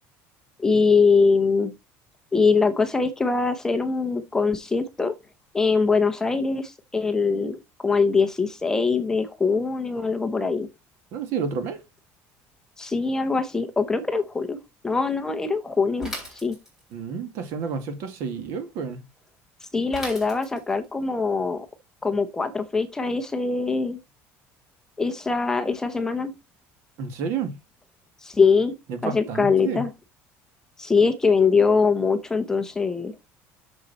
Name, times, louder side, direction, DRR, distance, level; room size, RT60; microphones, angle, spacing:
voice 1, 0.6-1.7 2.3-5.1 5.5-10.7 12.8-14.6 14.8-16.6 19.7-21.7 22.0-24.0 25.0-26.3 28.2-28.7 29.0-29.9 30.8-33.1, left 4 dB, 10° left, 0.7 m, -22 dB
voice 2, 11.1-11.8 16.9-19.0 27.0-27.6 28.9-29.8, right 6 dB, 60° right, 1.9 m, -30 dB
Bicycle / Mechanisms, 16.0-17.0 19.9-20.8, left 1 dB, 10° right, 3.6 m, -37 dB
7.0 x 6.7 x 4.1 m
cardioid pair, 170°, 5 cm